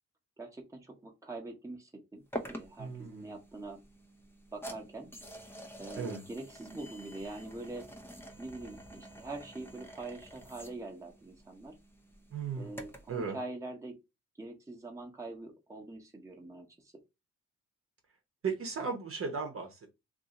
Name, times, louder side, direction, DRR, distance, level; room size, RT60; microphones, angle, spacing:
voice 1, 0.4-3.8 4.5-5.1 5.8-7.9 8.4-11.7 12.6-14.0 14.4-16.9, right 2 dB, 10° right, 0 dB, 1.0 m, -44 dB
sound 1, 2.3-13.2, equal, 5° left, 0.7 m, -48 dB
voice 2, 2.8-3.3 6.0-6.2 12.3-12.7 13.1-13.4 18.4-19.9, right 5 dB, 45° right, 3 dB, 0.9 m, -36 dB
2.7 x 2.7 x 3.7 m, 0.24 s
cardioid pair, 95°, 30 cm